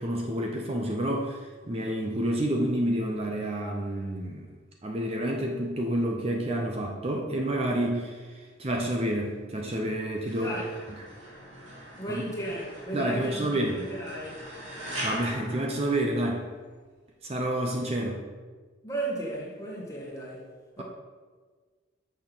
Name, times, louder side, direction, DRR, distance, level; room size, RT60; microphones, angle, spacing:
voice 1, 0.0-4.5 4.8-10.5 12.1-12.2 12.9-13.8 15.0-16.5 17.2-18.2, right 1 dB, 30° right, 1 dB, 0.7 m, -29 dB
sound 1, 10.3-16.5, equal, 75° right, 2.9 m, -41 dB
voice 2, 10.4-10.7 12.0-14.4 18.8-20.5 20.8-20.9, right 1 dB, 15° left, -3 dB, 1.7 m, -35 dB
6.6 x 6.1 x 6.1 m, 1.5 s
head